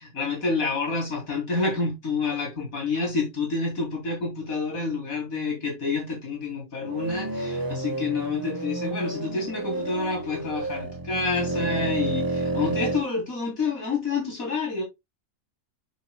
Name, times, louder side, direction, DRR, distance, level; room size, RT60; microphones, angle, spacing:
voice 1, 0.0-14.8, left 4 dB, 85° left, 4.4 m, -28 dB
sound 1, 6.8-13.0, right 2 dB, 20° right, 0.7 m, -30 dB
9.3 x 6.4 x 2.3 m
omnidirectional pair, 1.4 m